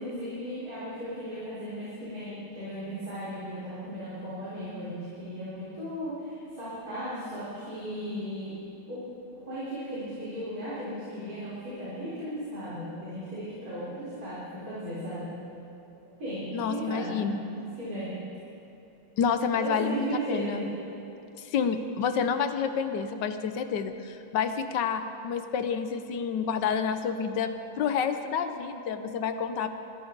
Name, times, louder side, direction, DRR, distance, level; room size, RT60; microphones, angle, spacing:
voice 1, 0.0-8.5 8.9-9.0 9.4-15.3 16.2-17.2 17.5-18.2 19.6-20.7, equal, 40° right, -11 dB, 4.4 m, -36 dB
voice 2, 16.5-17.4 19.2-20.6 21.4-29.7, left 6 dB, 65° left, 9 dB, 1.2 m, -29 dB
21.5 x 14.0 x 3.9 m, 2.9 s
omnidirectional pair, 2.4 m